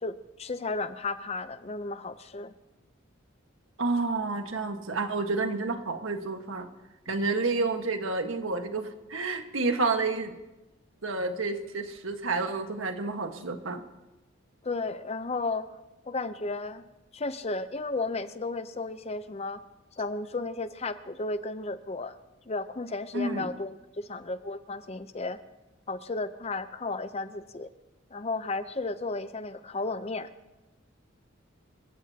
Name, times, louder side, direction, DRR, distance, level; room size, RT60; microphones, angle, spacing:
voice 1, 0.0-2.5 14.6-15.7 16.1-16.8 17.1-19.6 20.0-22.1 22.5-25.4 25.9-27.7 28.1-30.3, left 3 dB, 30° left, 12 dB, 0.6 m, -33 dB
voice 2, 3.8-6.7 7.1-10.4 11.0-13.8 23.1-23.5, right 3 dB, 80° right, 5 dB, 1.5 m, -30 dB
27.0 x 16.0 x 2.9 m, 1.0 s
head